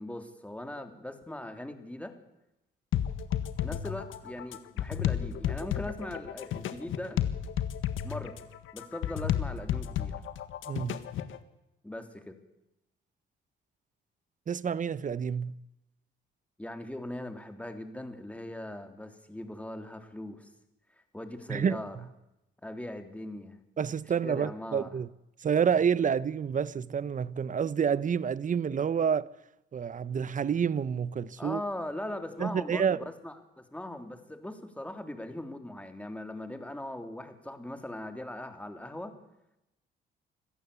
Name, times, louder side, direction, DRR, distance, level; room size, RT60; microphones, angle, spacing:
voice 1, 0.0-2.1 3.6-7.2 8.0-8.4 8.7-10.2 11.8-12.4 16.6-20.5 21.1-22.0 22.6-23.6 24.2-25.0 31.4-39.1, left 1 dB, 5° left, 3.3 m, -40 dB
sound 1, 2.9-11.4, left 10 dB, 80° left, 1.6 m, -32 dB
voice 2, 10.7-11.0 14.5-15.6 21.5-21.8 23.8-25.1 25.4-29.3 29.7-31.6 32.4-33.0, right 7 dB, 40° right, 0.9 m, -28 dB
26.0 x 15.0 x 8.4 m
cardioid pair, 90°, 20 cm